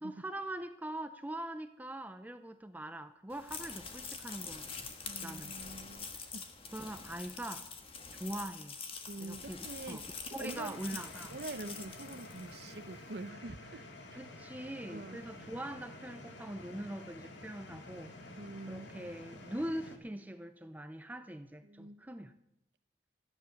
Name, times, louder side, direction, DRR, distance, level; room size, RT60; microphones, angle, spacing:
voice 1, 0.0-4.9 5.2-5.5 6.7-7.7 8.1-8.8 9.2-10.0 10.3-11.4 14.2-18.1 18.7-22.4, right 1 dB, 10° right, 0.6 m, -42 dB
sound 1, 3.3-12.8, left 5 dB, 30° left, 1.4 m, -45 dB
voice 2, 5.1-6.1 6.3-6.5 9.1-10.1 10.4-11.0 11.3-14.2 14.9-15.2 18.4-18.9 21.6-22.1, right 2 dB, 60° right, 0.8 m, -45 dB
sound 2, 10.5-20.0, left 2 dB, 75° left, 2.0 m, -50 dB
14.0 x 11.0 x 6.5 m
head